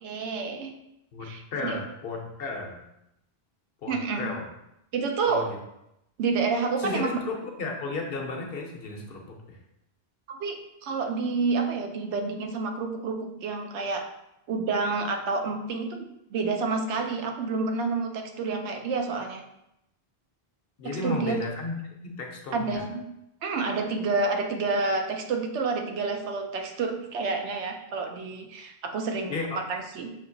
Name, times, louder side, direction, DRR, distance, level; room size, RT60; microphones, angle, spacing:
voice 1, 0.0-0.7 1.2-1.8 3.9-4.3 4.9-5.5 6.2-7.2 10.3-14.1 14.5-19.4 20.8-21.4 22.5-23.0 23.4-30.1, right 4 dB, 85° right, 4 dB, 0.9 m, -29 dB
voice 2, 1.1-2.8 3.8-4.5 5.3-5.6 6.8-9.6 20.8-22.8 29.3-29.6, left 3 dB, 65° left, 1 dB, 0.8 m, -34 dB
5.6 x 2.8 x 2.6 m, 0.85 s
omnidirectional pair, 1.1 m